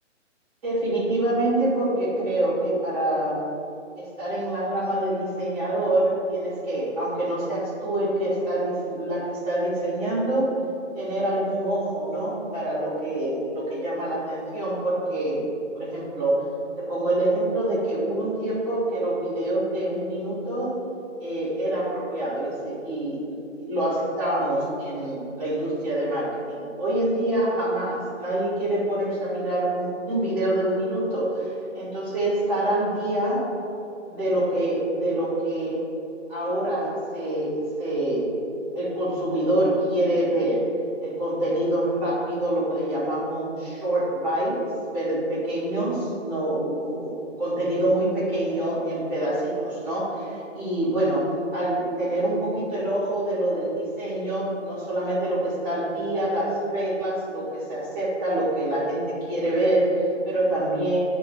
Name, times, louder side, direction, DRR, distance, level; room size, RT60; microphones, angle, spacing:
voice 1, 0.6-3.4 4.0-10.5 10.9-15.4 15.7-16.4 16.8-20.8 21.2-33.5 34.1-35.8 36.3-38.4 38.7-40.7 41.0-44.6 44.9-47.1 47.4-61.0, right 1 dB, 10° right, -10 dB, 1.7 m, -26 dB
10.0 x 3.5 x 4.7 m, 2.6 s
hypercardioid pair, 175°, 38 cm